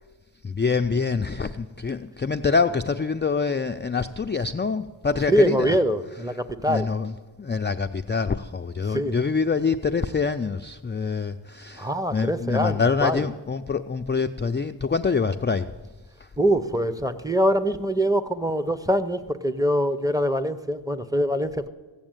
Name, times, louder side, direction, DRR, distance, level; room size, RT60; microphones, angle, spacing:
voice 1, 0.4-5.8 6.7-15.8 16.2-16.3, left 5 dB, 25° left, 8 dB, 0.3 m, -25 dB
voice 2, 5.3-6.9 8.9-9.2 11.8-13.2 16.4-21.7, equal, 10° right, 10 dB, 0.7 m, -24 dB
15.5 x 7.1 x 9.0 m, 1.3 s
wide cardioid pair, 75°, 48 cm